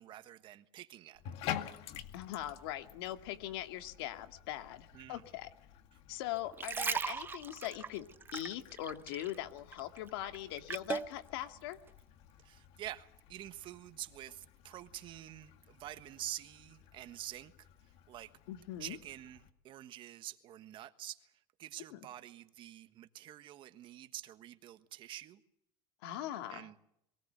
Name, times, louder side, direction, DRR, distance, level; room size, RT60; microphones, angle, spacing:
voice 1, 0.0-1.3 4.9-5.2 12.4-17.7 18.1-18.3 18.8-25.4 26.5-26.8, right 13 dB, 40° right, 1.4 m, -47 dB
Bathtub (filling or washing), 1.1-19.5, left 11 dB, 55° left, 2.0 m, -50 dB
voice 2, 2.1-5.5 6.1-11.8 18.5-19.0 21.9-22.0 26.0-26.7, left 13 dB, 80° left, 2.1 m, -41 dB
sound 1, 6.4-9.4 9.7-11.1 11.7-11.9, right 5 dB, 15° right, 0.8 m, -38 dB
23.0 x 17.5 x 8.1 m
supercardioid pair, 145°, 13 cm